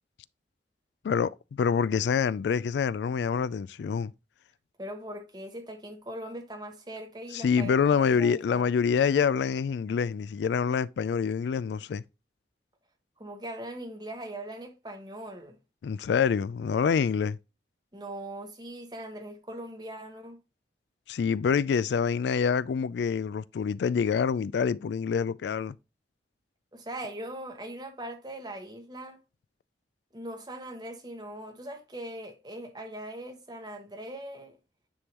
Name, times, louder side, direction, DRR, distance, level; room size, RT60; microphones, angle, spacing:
voice 1, 1.0-4.1 7.3-12.0 15.8-17.4 21.1-25.8, left 6 dB, 80° left, 0.3 m, -26 dB
voice 2, 4.8-8.7 13.2-15.6 17.9-20.4 26.7-29.2 30.1-34.6, right 1 dB, 25° right, 1.2 m, -40 dB
9.7 x 3.7 x 2.9 m
head